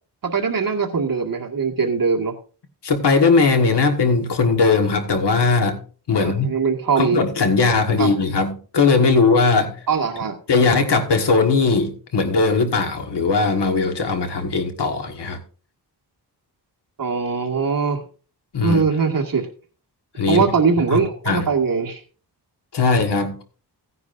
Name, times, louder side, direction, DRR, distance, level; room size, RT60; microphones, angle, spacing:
voice 1, 0.2-2.3 6.2-7.2 8.0-8.1 9.9-10.4 17.0-18.1 18.6-19.5 20.3-22.0, right 5 dB, 55° right, 1 dB, 1.8 m, -21 dB
voice 2, 2.8-5.8 6.1-6.5 7.0-9.7 10.5-15.4 18.5-18.8 20.2-20.5 20.9-21.5 22.7-23.4, left 4 dB, 75° left, 5 dB, 1.7 m, -19 dB
16.0 x 9.8 x 2.6 m, 0.39 s
wide cardioid pair, 140°, 41 cm